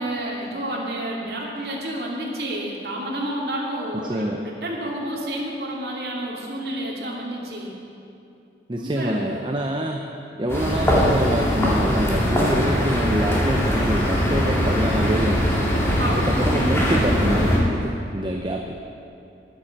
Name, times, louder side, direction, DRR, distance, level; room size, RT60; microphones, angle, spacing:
voice 1, 0.0-7.7 8.8-9.4 16.0-16.3, right 1 dB, 60° right, -3 dB, 2.6 m, -30 dB
voice 2, 3.9-4.4 8.7-10.1 10.4-15.7 16.2-18.8, right 1 dB, 25° right, 2 dB, 0.7 m, -26 dB
sound 1, 10.5-17.6, equal, 15° left, 2.3 m, -21 dB
11.5 x 10.5 x 7.3 m, 2.6 s
head